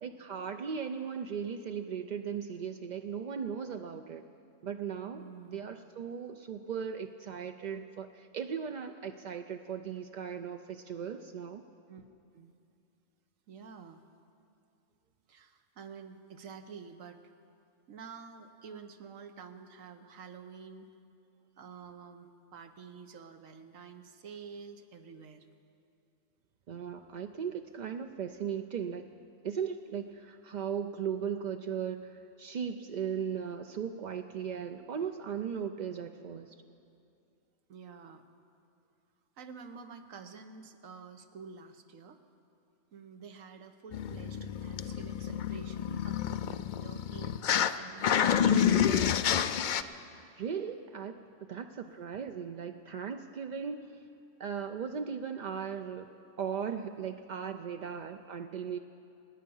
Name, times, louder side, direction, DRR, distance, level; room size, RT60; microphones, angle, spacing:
voice 1, 0.0-4.2 4.6-5.2 5.5-11.6 26.7-29.1 29.4-36.6 50.4-51.1 51.5-53.9 54.4-56.1 56.4-58.8, right 7 dB, 65° right, 6 dB, 0.4 m, -37 dB
voice 2, 5.1-5.6 11.9-12.0 12.3-12.5 13.5-14.0 15.3-17.2 17.9-20.9 21.6-25.5 37.7-38.2 39.4-42.2 42.9-48.5 51.8-52.0 57.9-58.0, right 6 dB, 90° right, 7 dB, 1.4 m, -49 dB
sound 1, 43.9-47.7 48.0-49.8, left 8 dB, 70° left, 0.4 m, -29 dB
27.0 x 9.7 x 5.5 m, 2.5 s
omnidirectional pair, 1.4 m